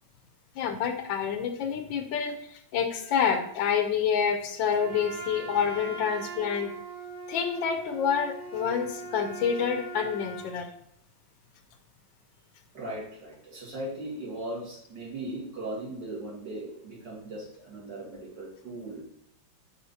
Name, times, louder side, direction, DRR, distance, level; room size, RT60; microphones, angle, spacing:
voice 1, 0.6-6.7 7.3-10.7, left 7 dB, 75° left, 7 dB, 1.3 m, -28 dB
Trumpet, 4.7-10.5, right 3 dB, 75° right, 2.7 m, -40 dB
voice 2, 12.7-19.0, right 1 dB, 60° right, -5 dB, 2.6 m, -38 dB
5.7 x 5.4 x 4.0 m, 0.70 s
omnidirectional pair, 2.2 m